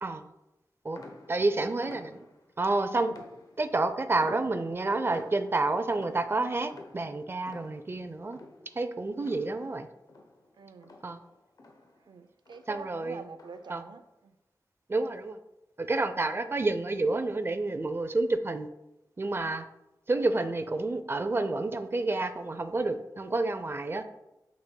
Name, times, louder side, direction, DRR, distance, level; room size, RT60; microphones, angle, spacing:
sound 1, 0.9-2.5 3.1-3.8 4.2-9.8 10.1-12.1 12.4-12.8 13.3-13.8, left 2 dB, 60° left, 0.9 m, -51 dB
voice 1, 1.3-2.2 2.6-3.1 3.6-8.4 8.8-9.9 11.0-11.2 12.7-13.2 13.7-13.8 14.9-15.4 15.8-18.7 19.2-19.6 20.1-24.0, right 2 dB, 35° right, 0.5 m, -29 dB
voice 2, 10.6-10.9 12.1-14.0, right 5 dB, 90° right, 0.4 m, -46 dB
7.4 x 6.1 x 2.3 m
wide cardioid pair, 85°, 7 cm